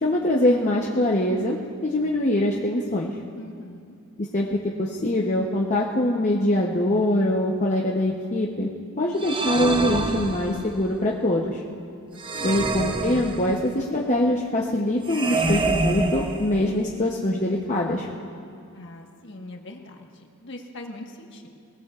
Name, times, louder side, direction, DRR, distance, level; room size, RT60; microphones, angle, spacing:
voice 1, 0.0-3.1 4.2-8.7 9.0-11.6 12.4-18.1, left 1 dB, 35° left, -3 dB, 0.8 m, -23 dB
voice 2, 3.4-3.9 12.3-12.7 18.7-21.5, left 1 dB, 55° left, 1 dB, 1.4 m, -41 dB
sound 1, 9.2-10.9 12.2-13.8 15.1-16.9, right 2 dB, 25° right, 0.6 m, -27 dB
22.0 x 19.0 x 2.4 m, 2.4 s
head